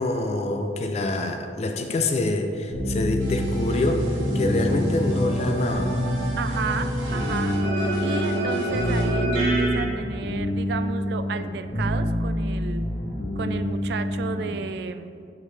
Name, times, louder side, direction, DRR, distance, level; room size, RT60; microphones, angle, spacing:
voice 1, 0.0-6.0, left 2 dB, 35° left, 5 dB, 0.3 m, -26 dB
sound 1, 2.7-14.6, equal, 55° left, 1.3 m, -28 dB
sound 2, 3.2-9.8, right 1 dB, 90° right, 1.4 m, -27 dB
voice 2, 6.4-7.5 8.0-12.8 13.4-15.2, right 5 dB, 60° right, 10 dB, 0.3 m, -33 dB
8.2 x 3.7 x 3.3 m, 2.4 s
head